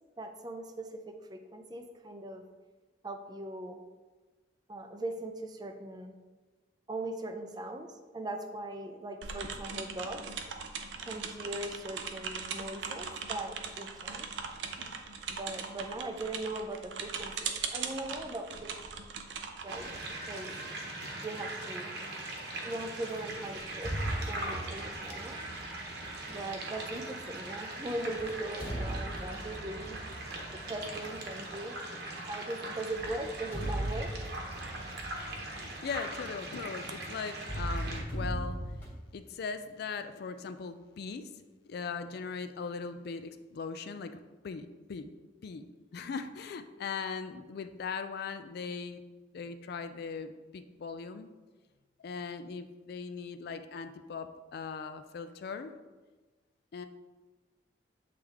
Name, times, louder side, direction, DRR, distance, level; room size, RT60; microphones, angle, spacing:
voice 1, 0.2-2.4 3.0-3.8 4.7-6.1 6.9-10.3 11.0-14.3 15.3-19.0 19.6-19.9 20.3-20.5 21.2-21.9 22.6-25.4 26.3-30.0 30.6-31.8 32.3-34.1, right 1 dB, 25° right, 6 dB, 0.5 m, -40 dB
sound 1, 9.2-20.8, right 5 dB, 80° right, 0.6 m, -40 dB
sound 2, 19.7-38.0, right 2 dB, 65° right, 1.0 m, -41 dB
sound 3, 23.5-27.2 28.0-31.6 32.9-36.9 37.4-38.9, right 1 dB, 10° left, 1.6 m, -39 dB
voice 2, 35.6-38.6 39.1-41.3 41.7-45.0 45.4-45.6 45.9-49.0 49.3-51.3 52.0-55.7 56.7-56.9, left 5 dB, 60° left, 9 dB, 0.4 m, -39 dB
7.9 x 3.3 x 3.5 m, 1.3 s
head